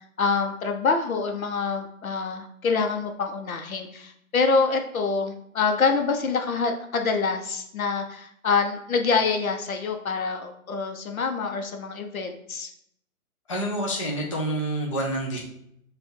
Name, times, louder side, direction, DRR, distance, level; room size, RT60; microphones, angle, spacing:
voice 1, 0.2-12.7, left 4 dB, 70° left, 4 dB, 0.9 m, -26 dB
voice 2, 13.5-15.4, right 1 dB, 25° left, -3 dB, 0.5 m, -28 dB
4.2 x 2.6 x 4.6 m, 0.72 s
hypercardioid pair, 150°, 43 cm